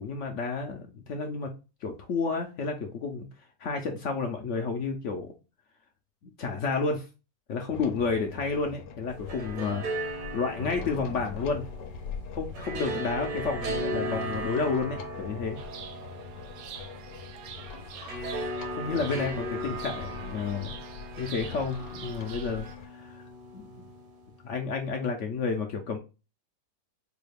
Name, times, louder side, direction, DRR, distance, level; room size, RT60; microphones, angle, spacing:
voice 1, 0.0-1.5 1.8-3.3 3.6-5.3 6.2-7.1 7.5-9.8 10.2-11.6 12.3-15.6 18.8-20.8 21.2-23.2 23.5-23.7 24.4-26.0, left 4 dB, 65° left, 4 dB, 0.7 m, -31 dB
sound 1, 7.7-22.9, left 5 dB, 85° left, 1.2 m, -42 dB
sound 2, 9.1-24.3, right 1 dB, 60° right, 1.3 m, -37 dB
Chirp tweet, 15.6-22.8, right 8 dB, 90° right, 1.3 m, -47 dB
4.7 x 2.3 x 3.3 m, 0.30 s
omnidirectional pair, 1.8 m